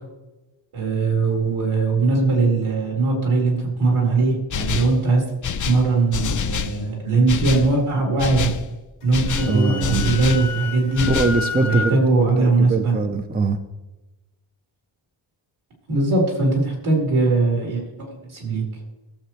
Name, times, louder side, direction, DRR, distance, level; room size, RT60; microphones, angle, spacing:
voice 1, 0.7-5.2 5.6-8.5 9.0-11.0 11.6-12.9 15.9-18.6, right 3 dB, 75° right, -2 dB, 4.3 m, -20 dB
sound 1, 4.5-5.0 5.4-6.8 7.3-7.7 8.2-8.6 9.1-10.5 11.0-11.4, left 6 dB, 40° left, 0.5 m, -26 dB
Wind instrument woodwind instrument, 9.0-12.0, left 5 dB, 80° left, 1.3 m, -30 dB
voice 2, 9.4-10.2 11.1-13.6, right 3 dB, 20° right, 8 dB, 0.5 m, -23 dB
17.5 x 7.7 x 3.2 m, 1.1 s
wide cardioid pair, 175°, 50 cm